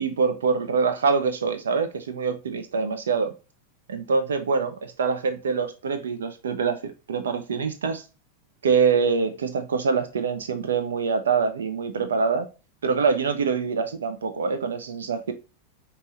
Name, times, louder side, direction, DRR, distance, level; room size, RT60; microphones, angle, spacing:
voice 1, 0.0-3.3 3.9-8.0 8.6-12.5 12.8-15.3, right 5 dB, 65° right, 0.5 m, -25 dB
5.4 x 2.9 x 2.9 m
figure-of-eight pair, 90°, 0 cm